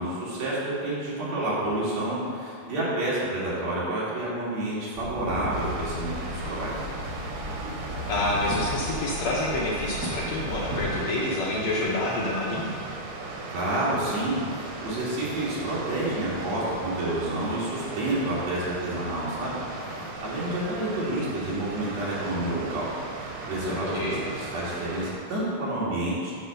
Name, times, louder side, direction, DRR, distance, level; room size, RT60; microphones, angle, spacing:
voice 1, 0.0-6.9 13.5-19.5 19.9-22.9 23.1-26.3, right 1 dB, 60° right, -8 dB, 3.1 m, -29 dB
Walk footsteps / Chatter / Hiss, 4.9-10.9, equal, 40° right, 1.7 m, -35 dB
Water, 5.5-25.1, right 2 dB, 85° right, 2.7 m, -37 dB
voice 2, 8.1-12.7 23.9-24.2, left 1 dB, 65° left, -4 dB, 1.9 m, -28 dB
9.1 x 4.2 x 6.8 m, 2.4 s
omnidirectional pair, 3.8 m